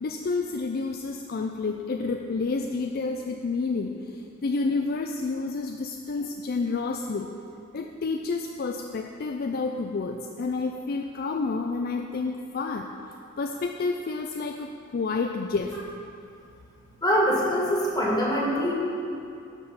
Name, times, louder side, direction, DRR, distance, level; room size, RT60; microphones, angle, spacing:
voice 1, 0.0-7.3 7.7-12.9 13.4-15.8, left 4 dB, 50° left, 4 dB, 0.4 m, -29 dB
voice 2, 17.0-18.7, equal, 20° left, -4 dB, 1.9 m, -23 dB
12.5 x 5.4 x 5.7 m, 2.6 s
head